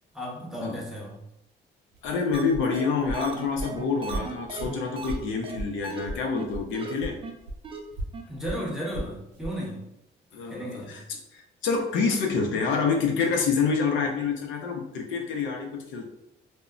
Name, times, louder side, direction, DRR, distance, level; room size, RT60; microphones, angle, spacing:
voice 1, 0.1-1.2 8.3-9.9 10.5-11.1 11.9-12.1, equal, ahead, -4 dB, 0.9 m, -35 dB
Walk footsteps, 1.9-6.7 7.0-9.6, right 1 dB, 90° right, 0.6 m, -37 dB
voice 2, 2.0-7.2 10.3-11.0 11.3-16.1, left 5 dB, 80° left, 1 dB, 0.6 m, -27 dB
sound 1, 2.3-2.4 2.7-2.8 3.1-5.2 5.4-5.6 5.8-6.0 6.4-6.5 6.7-6.9 7.2-7.3 7.6-7.8 8.1-8.2 8.5-8.6, right 4 dB, 25° right, 0.4 m, -37 dB
2.1 x 2.0 x 3.6 m, 0.84 s
cardioid pair, 90°, 20 cm